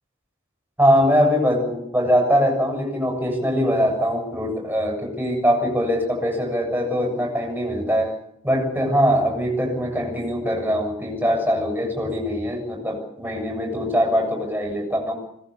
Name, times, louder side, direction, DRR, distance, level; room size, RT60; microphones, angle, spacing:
voice 1, 0.8-8.1 8.4-15.1, equal, 10° right, 3 dB, 7.4 m, -22 dB
21.0 x 19.0 x 8.6 m, 0.71 s
head